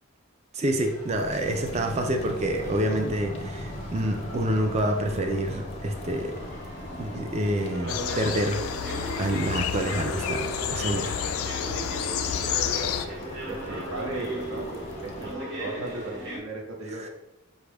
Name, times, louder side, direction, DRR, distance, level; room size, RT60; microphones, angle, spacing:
voice 1, 0.5-6.4 7.0-8.6 9.2-11.1, right 1 dB, 30° right, 4 dB, 0.4 m, -27 dB
sound 1, 0.8-16.4, equal, 55° right, 1.1 m, -38 dB
sound 2, 1.1-15.3, left 1 dB, 30° left, 0.5 m, -39 dB
sound 3, 7.9-13.1, left 9 dB, 90° left, 0.3 m, -30 dB
voice 2, 12.2-13.0 13.5-17.1, right 2 dB, 75° right, -1 dB, 1.0 m, -37 dB
5.1 x 2.4 x 3.3 m, 0.89 s
head